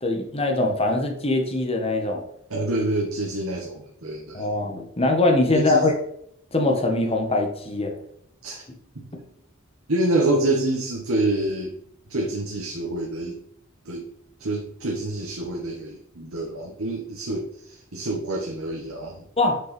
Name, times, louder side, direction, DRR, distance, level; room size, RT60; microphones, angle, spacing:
voice 1, 0.0-2.2 4.3-5.9 6.5-7.9 19.4-19.6, left 2 dB, 30° left, 3 dB, 1.3 m, -22 dB
voice 2, 2.5-4.5 5.5-5.9 8.4-8.6 8.9-9.0 9.9-11.7 12.1-13.4 13.8-14.0 14.4-19.2, right 2 dB, 80° right, -1 dB, 1.3 m, -27 dB
6.2 x 5.5 x 5.3 m, 0.71 s
head